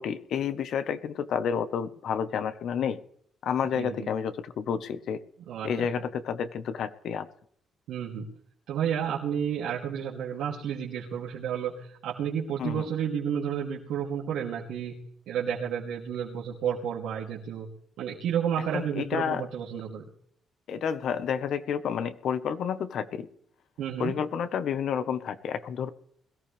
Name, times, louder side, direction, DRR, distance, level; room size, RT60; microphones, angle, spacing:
voice 1, 0.0-3.0 3.4-5.2 5.6-7.3 12.6-12.9 18.7-19.5 20.7-23.3 24.0-25.9, left 7 dB, 70° left, 12 dB, 1.2 m, -30 dB
voice 2, 3.8-4.1 5.5-5.9 7.9-8.3 8.7-15.0 15.3-17.7 18.0-20.1 23.8-24.1, right 8 dB, 85° right, -5 dB, 2.8 m, -31 dB
21.5 x 14.0 x 3.4 m, 0.65 s
cardioid pair, 90°, 0 cm